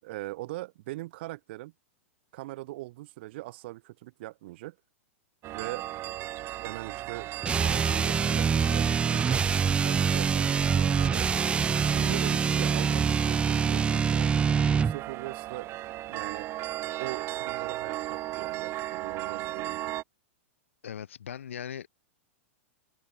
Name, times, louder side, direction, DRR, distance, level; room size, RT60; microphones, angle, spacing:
voice 1, 0.0-1.7 2.3-4.8 5.5-5.9 6.6-7.3 7.6-9.4 9.8-11.3 11.9-15.7 16.1-16.5 17.0-19.8, right 18 dB, 55° right, 4.3 m, -41 dB
sound 1, 5.4-20.0, right 16 dB, 35° right, 3.6 m, -37 dB
sound 2, 7.4-15.0, right 6 dB, 15° right, 0.4 m, -25 dB
voice 2, 20.8-21.9, left 9 dB, 70° left, 4.7 m, -39 dB
open air
figure-of-eight pair, 100°, 7 cm